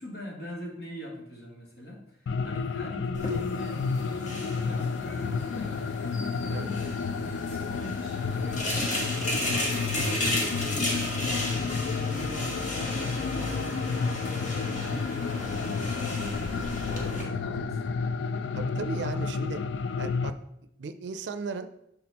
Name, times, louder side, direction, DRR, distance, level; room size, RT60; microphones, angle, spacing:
voice 1, 0.0-5.9 6.5-13.8 14.2-18.1, equal, 65° left, -2 dB, 1.8 m, -43 dB
sound 1, 2.3-20.3, left 5 dB, 85° left, 0.4 m, -31 dB
sound 2, 3.1-17.2, left 1 dB, 45° left, 1.4 m, -34 dB
voice 2, 18.5-19.6 20.0-20.4 20.8-21.7, right 4 dB, 75° right, 10 dB, 0.4 m, -36 dB
6.6 x 4.3 x 4.1 m, 0.78 s
head